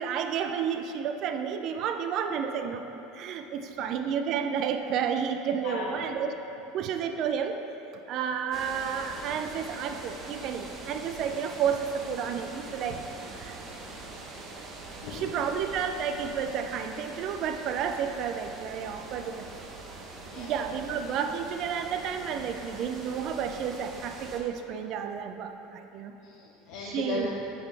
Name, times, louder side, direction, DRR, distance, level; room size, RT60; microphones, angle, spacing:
voice 1, 0.0-2.8 3.1-6.3 6.7-7.6 8.1-13.6 15.1-19.5 20.4-26.1 26.8-27.3, right 7 dB, 50° right, 6 dB, 0.4 m, -31 dB
voice 2, 5.6-6.2 9.3-9.4 15.0-15.3 20.2-20.5 26.2-27.4, left 3 dB, 70° left, -6 dB, 0.9 m, -36 dB
sound 1, 8.5-24.4, right 2 dB, 30° right, 0.8 m, -43 dB
10.0 x 4.0 x 3.3 m, 2.9 s
supercardioid pair, 125°, 0 cm